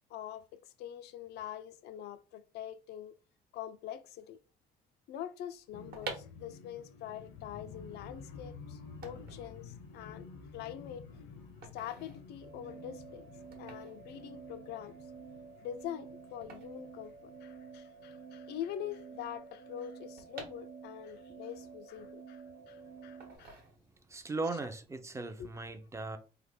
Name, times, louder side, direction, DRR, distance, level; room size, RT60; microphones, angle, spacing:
voice 1, 0.1-3.2 3.5-4.4 5.1-11.1 11.7-13.2 13.6-15.0 15.6-23.6 25.4-25.5, left 10 dB, 75° left, 0.4 m, -44 dB
sound 1, 5.7-19.6 20.0-20.4 20.7-21.0, left 5 dB, 90° left, 0.8 m, -52 dB
sound 2, 5.7-17.8 18.1-18.2 18.3-21.2 21.6-22.6 23.2-24.2 24.5-24.8, right 3 dB, 65° right, 1.1 m, -50 dB
sound 3, 12.4-23.4, right 5 dB, 80° right, 0.6 m, -50 dB
voice 2, 24.1-26.2, right 3 dB, 15° right, 0.4 m, -38 dB
3.3 x 2.1 x 3.5 m
cardioid pair, 110°, 17 cm